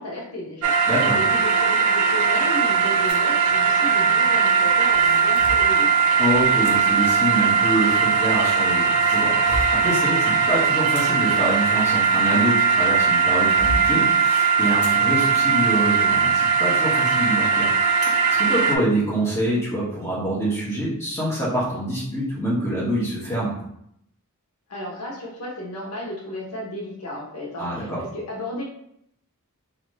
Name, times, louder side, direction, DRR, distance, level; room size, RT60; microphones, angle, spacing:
voice 1, 0.0-0.7 1.1-5.9 24.7-28.6, left 1 dB, 90° left, -3 dB, 0.9 m, -34 dB
sound 1, 0.6-18.8, right 6 dB, 75° right, 0.4 m, -19 dB
voice 2, 0.9-1.2 6.2-17.7 18.0-23.5 27.6-28.0, right 1 dB, 15° left, -8 dB, 1.2 m, -26 dB
sound 2, 3.1-3.3 4.5-5.7 6.6-6.8 7.9-8.5 9.0-9.9 10.7-12.7 13.2-13.9 14.8-15.0 15.5-15.6 16.2-16.4, equal, 50° left, 0.6 m, -33 dB
3.1 x 2.6 x 3.2 m, 0.73 s
head